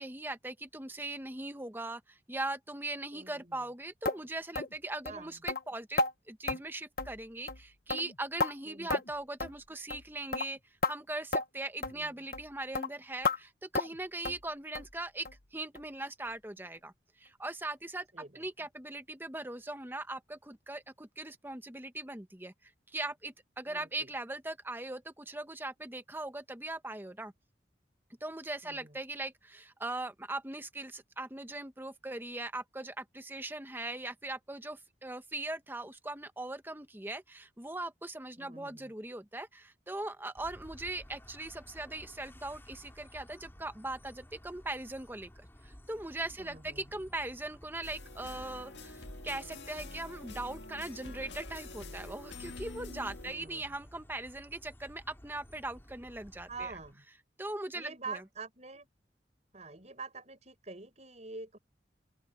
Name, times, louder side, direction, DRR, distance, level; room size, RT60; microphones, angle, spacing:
voice 1, 0.0-10.6 10.9-27.3 28.2-56.7 57.4-58.2, right 2 dB, 10° right, 1.1 m, -40 dB
voice 2, 3.1-3.6 5.1-5.4 8.6-9.0 11.9-12.1 18.1-18.4 23.7-24.1 28.6-29.0 38.4-38.9 46.4-46.8 53.2-53.6 56.5-57.0 57.7-58.9 59.5-61.6, right 4 dB, 40° right, 6.6 m, -46 dB
sound 1, 4.1-4.2 4.6-4.7 5.1-5.2 5.5-5.6 6.0-6.1 6.5-6.6 7.0-7.2 7.5-7.6 7.9-8.5 8.9-9.1 9.4-9.6 9.9-10.1 10.3-10.5 10.8-10.9 11.3-11.4 11.8-12.0 12.3-12.5 12.7-12.9 13.2-13.4 13.7-14.0 14.3-14.4 14.8-14.9 15.3-15.4 15.8-15.9 16.3-16.4, left 3 dB, 55° left, 1.1 m, -32 dB
sound 2, 40.4-56.9, equal, 15° left, 4.9 m, -54 dB
sound 3, 47.8-53.3, left 2 dB, 85° left, 1.8 m, -46 dB
open air
head